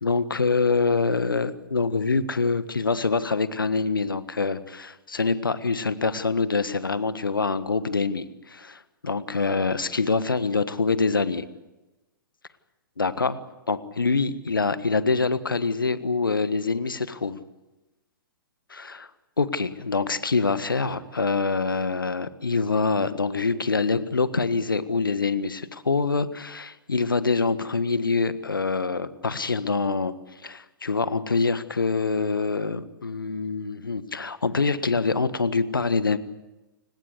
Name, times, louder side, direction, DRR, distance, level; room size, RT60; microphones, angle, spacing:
voice 1, 0.0-11.4 13.0-13.4 13.7-17.4 18.7-19.1 19.4-30.1 30.4-36.2, left 4 dB, 75° left, 14 dB, 1.5 m, -25 dB
29.0 x 17.5 x 8.3 m, 1.1 s
figure-of-eight pair, 115°, 11 cm